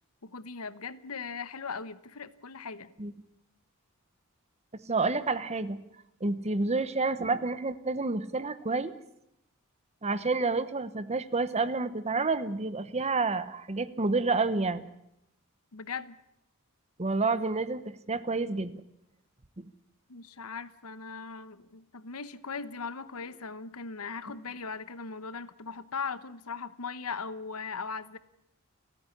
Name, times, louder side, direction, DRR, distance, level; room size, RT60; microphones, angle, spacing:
voice 1, 0.2-2.9 15.7-16.2 20.1-28.2, left 5 dB, 80° left, 15 dB, 1.1 m, -39 dB
voice 2, 4.7-5.8 6.2-8.9 10.0-14.8 17.0-18.8 19.6-19.7, right 3 dB, 30° right, 14 dB, 1.0 m, -29 dB
30.0 x 10.0 x 9.8 m, 0.81 s
head